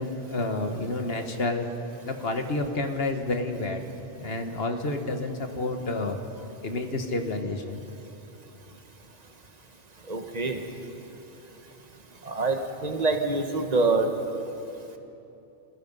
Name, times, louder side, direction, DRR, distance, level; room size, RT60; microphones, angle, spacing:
voice 1, 0.0-1.7 2.0-3.8 4.2-6.2 6.6-7.8, left 2 dB, 60° left, 5 dB, 1.7 m, -29 dB
voice 2, 10.0-10.7 12.2-14.1, right 3 dB, 35° right, 5 dB, 1.5 m, -26 dB
27.5 x 18.5 x 5.5 m, 2.9 s
omnidirectional pair, 1.1 m